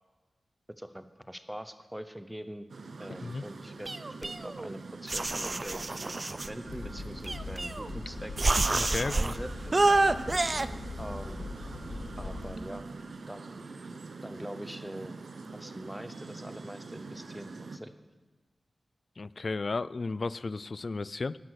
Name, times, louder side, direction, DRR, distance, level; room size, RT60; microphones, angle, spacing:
voice 1, 0.8-2.7 3.0-3.9 4.2-8.3 9.1-9.8 11.0-11.5 12.2-12.8 13.3-13.6 14.2-15.1 15.5-17.9, equal, 5° right, 11 dB, 0.8 m, -43 dB
sound 1, 2.7-17.8, right 3 dB, 70° right, 0.7 m, -44 dB
sound 2, 3.9-4.7 5.1-6.5 7.2-8.0 8.4-9.4 9.7-10.7, right 2 dB, 35° right, 0.4 m, -28 dB
sound 3, 6.6-12.5, left 3 dB, 80° left, 1.2 m, -41 dB
voice 2, 8.7-9.2 19.2-21.4, left 3 dB, 50° left, 18 dB, 0.3 m, -33 dB
11.0 x 10.0 x 6.5 m, 1.2 s
wide cardioid pair, 85°, 0 cm